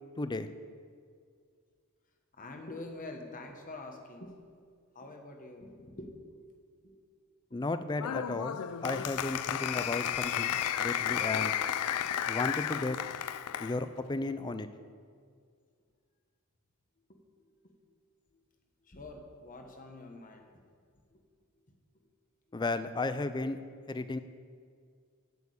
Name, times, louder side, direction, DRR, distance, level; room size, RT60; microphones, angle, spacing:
voice 1, 0.2-0.5 7.5-11.5 12.3-13.0 13.6-14.7 22.5-23.6 23.9-24.2, left 2 dB, 20° left, 11 dB, 0.4 m, -34 dB
voice 2, 2.4-4.4 4.9-6.4 6.8-6.9 7.5-7.6 12.0-12.1 17.1-17.7 18.8-20.5 21.1-21.2, left 2 dB, 35° left, 3 dB, 1.2 m, -46 dB
Applause, 8.0-13.8, left 10 dB, 90° left, 0.4 m, -33 dB
8.1 x 7.1 x 8.5 m, 2.1 s
head